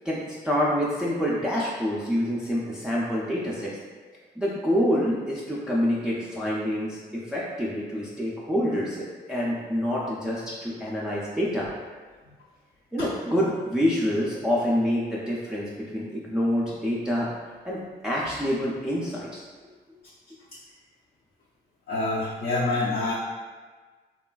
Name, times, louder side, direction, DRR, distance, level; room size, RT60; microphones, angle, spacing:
voice 1, 0.0-3.7 4.4-11.7 12.9-17.3 17.6-19.4, equal, 5° right, -6 dB, 0.3 m, -27 dB
voice 2, 21.9-23.1, left 2 dB, 60° left, -6 dB, 0.5 m, -26 dB
3.1 x 2.3 x 2.2 m, 1.4 s
cardioid pair, 120°, 18 cm